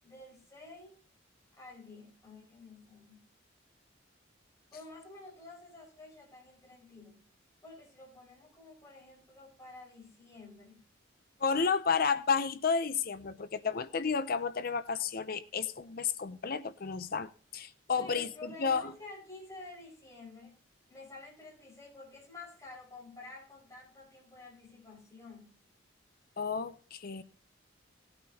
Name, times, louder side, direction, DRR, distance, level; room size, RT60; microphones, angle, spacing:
voice 1, 0.0-1.0 1.6-3.2 4.7-7.2 7.6-10.8 17.9-20.5 20.9-25.5, left 2 dB, 15° left, 5.4 m, -50 dB
voice 2, 11.4-18.9 26.4-27.2, left 5 dB, 50° left, 0.6 m, -32 dB
18.5 x 8.7 x 2.8 m
head